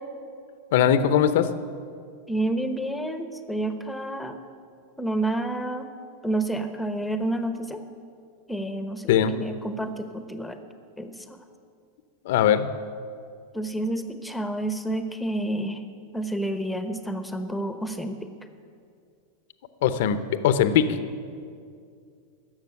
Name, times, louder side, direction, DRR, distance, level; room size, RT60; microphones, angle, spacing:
voice 1, 0.7-1.5 9.1-9.3 12.2-12.7 19.8-21.0, left 9 dB, 70° left, 12 dB, 0.8 m, -20 dB
voice 2, 2.3-4.4 5.0-5.9 6.2-7.8 8.5-9.1 9.4-10.6 11.0-11.4 13.5-15.8 16.1-18.2, right 1 dB, 5° left, 8 dB, 1.0 m, -29 dB
12.0 x 7.2 x 9.7 m, 2.3 s
hypercardioid pair, 105°, 0 cm